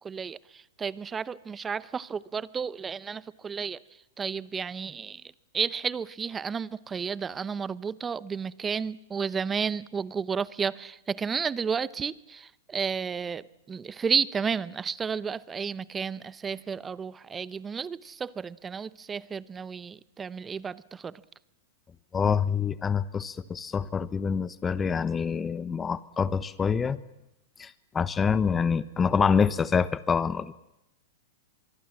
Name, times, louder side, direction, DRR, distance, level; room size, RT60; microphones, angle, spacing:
voice 1, 0.0-0.4 0.8-3.8 4.2-5.2 5.5-21.1, right 6 dB, 20° right, 19 dB, 0.8 m, -32 dB
voice 2, 22.1-27.0 27.6-30.5, left 6 dB, 20° left, 16 dB, 0.9 m, -26 dB
24.5 x 23.5 x 7.4 m, 0.91 s
hypercardioid pair, 105°, 0 cm